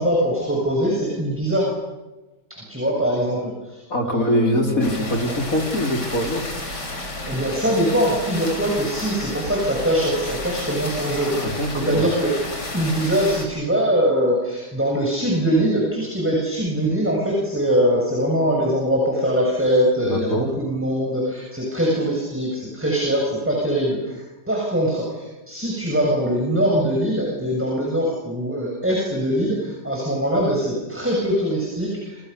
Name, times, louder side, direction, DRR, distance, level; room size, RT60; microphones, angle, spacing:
voice 1, 0.0-1.7 2.5-5.1 7.3-12.3 12.7-32.2, equal, 5° right, -1 dB, 7.0 m, -22 dB
voice 2, 3.9-6.4 11.2-12.0 20.0-20.5, equal, 50° left, 3 dB, 4.7 m, -23 dB
sound 1, 4.8-13.5, left 2 dB, 75° left, 5.5 m, -31 dB
30.0 x 28.5 x 7.0 m, 1.1 s
omnidirectional pair, 1.8 m